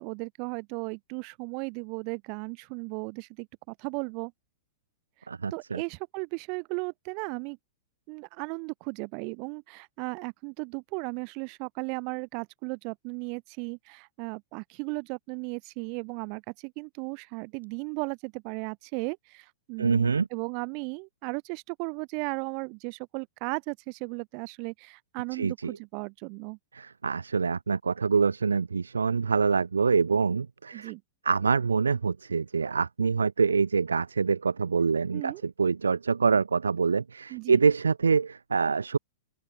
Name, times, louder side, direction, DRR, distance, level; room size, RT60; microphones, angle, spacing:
voice 1, 0.0-4.3 5.5-7.6 8.1-26.6 30.7-31.0 35.1-35.4 37.3-37.6, right 38 dB, 45° right, 1.8 m, -36 dB
voice 2, 5.3-5.8 19.8-20.3 25.3-25.7 26.7-30.9 31.3-39.0, right 5 dB, 80° right, 0.4 m, -25 dB
open air
figure-of-eight pair, 105°, 0 cm